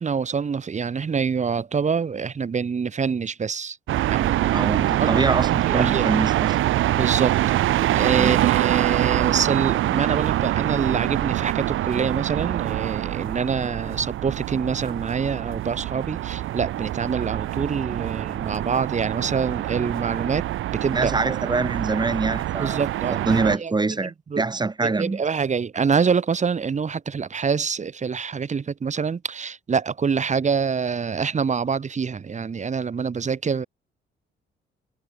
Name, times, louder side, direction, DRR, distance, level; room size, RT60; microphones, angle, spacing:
voice 1, 0.0-3.8 4.1-4.7 5.0-6.1 6.9-7.4 7.9-20.5 20.7-21.1 22.6-23.3 23.6-23.7 24.0-24.4 24.8-33.7, right 6 dB, 35° right, 1.8 m, -26 dB
sound 1, 3.9-23.6, right 14 dB, 85° right, 2.7 m, -24 dB
voice 2, 4.5-6.5 8.2-8.5 20.9-22.8 23.3-25.2, right 3 dB, 20° right, 3.0 m, -24 dB
cardioid pair, 90°, 20 cm